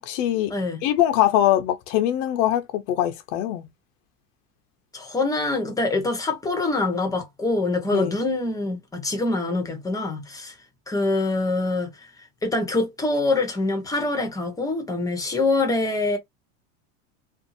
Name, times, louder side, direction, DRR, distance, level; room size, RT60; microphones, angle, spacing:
voice 1, 0.1-0.5 0.8-3.6 7.9-8.1, left 12 dB, 65° left, 0.6 m, -22 dB
voice 2, 4.9-10.6 10.9-12.1 12.4-16.2, left 2 dB, 10° left, 0.8 m, -25 dB
2.6 x 2.5 x 2.6 m
supercardioid pair, 130°, 42 cm